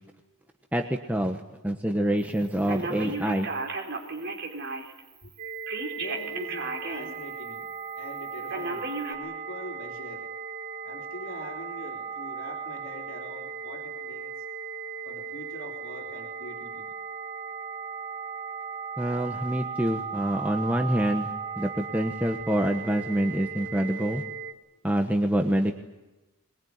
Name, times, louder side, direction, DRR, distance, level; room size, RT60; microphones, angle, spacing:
voice 1, 0.7-3.5 19.0-24.2 24.8-25.7, right 1 dB, 5° right, 3 dB, 1.2 m, -26 dB
Telephone, 2.7-5.0 5.7-7.1 7.6-7.7 8.5-9.1, right 3 dB, 55° right, 4.3 m, -34 dB
sound 1, 5.4-24.5, right 6 dB, 35° right, 1.9 m, -37 dB
voice 2, 6.0-10.2 10.8-14.3 15.0-16.9, left 1 dB, 65° left, 0 dB, 3.4 m, -43 dB
23.5 x 22.0 x 9.6 m, 1.1 s
head